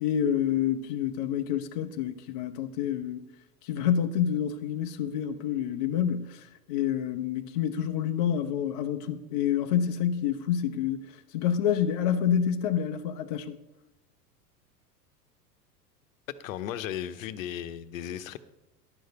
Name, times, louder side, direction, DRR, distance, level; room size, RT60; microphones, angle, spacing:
voice 1, 0.0-3.3 3.6-11.1 11.3-13.6, left 9 dB, 30° left, 0.3 m, -28 dB
voice 2, 16.3-18.4, left 10 dB, 55° left, 0.7 m, -36 dB
10.5 x 6.4 x 6.5 m
figure-of-eight pair, 90°, 48 cm